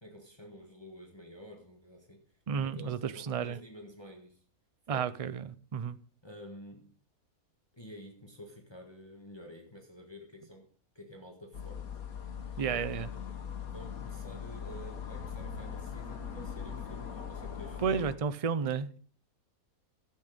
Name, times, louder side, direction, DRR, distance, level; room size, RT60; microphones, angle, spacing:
voice 1, 0.0-2.2 2.5-4.4 4.9-5.1 6.2-6.9 7.7-10.7 10.9-11.8 12.6-13.3 13.7-18.0, equal, 20° left, 1.7 m, -49 dB
voice 2, 2.5-3.6 4.9-6.0 12.6-13.1 17.8-19.0, right 6 dB, 65° right, 0.3 m, -32 dB
sound 1, 11.5-18.2, left 7 dB, 80° left, 1.5 m, -41 dB
12.0 x 8.5 x 5.2 m
omnidirectional pair, 1.5 m